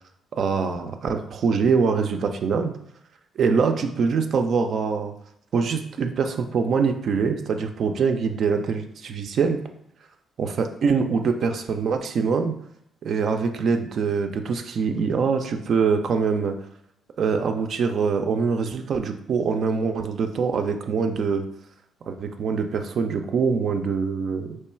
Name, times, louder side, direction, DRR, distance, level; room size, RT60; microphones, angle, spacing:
voice 1, 0.3-2.7 3.4-5.1 5.5-9.6 10.4-12.5 13.0-16.6 17.2-21.5 22.1-24.6, right 5 dB, 60° right, 6 dB, 0.4 m, -24 dB
3.1 x 2.2 x 4.3 m, 0.76 s
cardioid pair, 90°, 0 cm